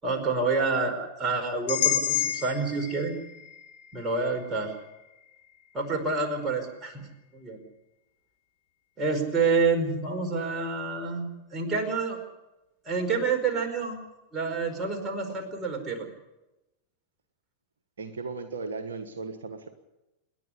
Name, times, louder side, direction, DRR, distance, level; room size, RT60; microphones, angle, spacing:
voice 1, 0.0-3.1 3.9-4.7 5.7-7.0 7.3-7.6 9.0-12.2 12.8-14.0 14.3-16.1, right 4 dB, 20° right, 3 dB, 4.9 m, -28 dB
sound 1, 1.7-5.7, left 12 dB, 60° left, 3.6 m, -31 dB
voice 2, 18.0-19.7, right 4 dB, 65° right, 6 dB, 1.5 m, -36 dB
28.0 x 11.0 x 10.0 m, 0.98 s
figure-of-eight pair, 90°, 0 cm